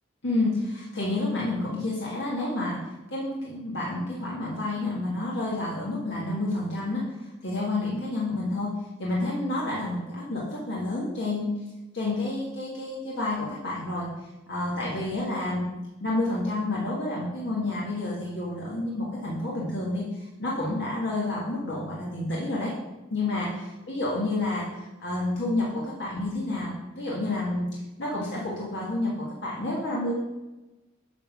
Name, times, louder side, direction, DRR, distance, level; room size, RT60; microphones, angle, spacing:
voice 1, 0.2-2.8 3.1-7.0 7.4-8.7 9.0-11.5 11.9-14.1 14.5-15.6 16.0-22.7 23.1-27.7 28.0-30.1, left 2 dB, 65° left, -5 dB, 1.6 m, -29 dB
8.2 x 3.8 x 5.9 m, 1.0 s
head